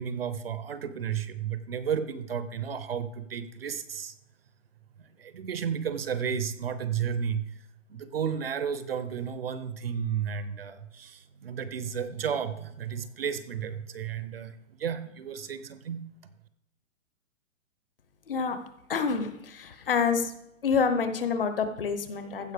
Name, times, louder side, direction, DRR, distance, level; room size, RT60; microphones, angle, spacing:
voice 1, 0.0-4.1 5.0-7.6 7.9-16.0, right 7 dB, 50° right, 13 dB, 0.7 m, -33 dB
voice 2, 18.3-18.6 18.9-20.3 20.6-22.5, left 5 dB, 45° left, 9 dB, 1.0 m, -27 dB
15.0 x 5.4 x 4.9 m, 0.78 s
hypercardioid pair, 180°, 38 cm